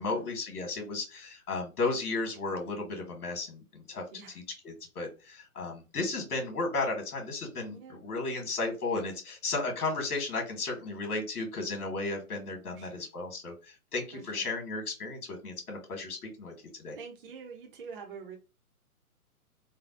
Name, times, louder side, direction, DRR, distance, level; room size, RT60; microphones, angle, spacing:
voice 1, 0.0-13.5 13.9-16.5 16.8-16.9, left 3 dB, 85° left, 3 dB, 1.6 m, -34 dB
voice 2, 12.7-13.1 14.1-14.4 16.9-18.4, right 5 dB, 40° right, 2 dB, 0.7 m, -46 dB
3.4 x 2.2 x 2.5 m, 0.30 s
hypercardioid pair, 160°, 45 cm